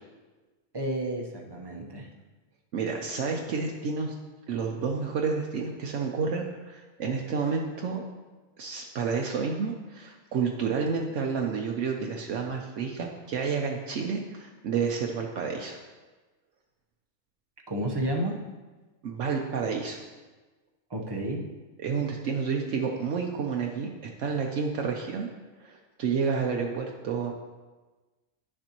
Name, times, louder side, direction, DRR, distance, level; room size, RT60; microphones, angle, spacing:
voice 1, 0.7-2.1 17.7-18.4 20.9-21.5, right 1 dB, 25° right, 1 dB, 0.8 m, -31 dB
voice 2, 2.7-4.1 4.5-8.0 8.6-15.8 19.0-20.0 21.8-23.9 24.2-25.3 25.6-27.3, right 5 dB, 70° right, 1 dB, 1.0 m, -30 dB
10.5 x 6.6 x 2.9 m, 1.2 s
omnidirectional pair, 1.3 m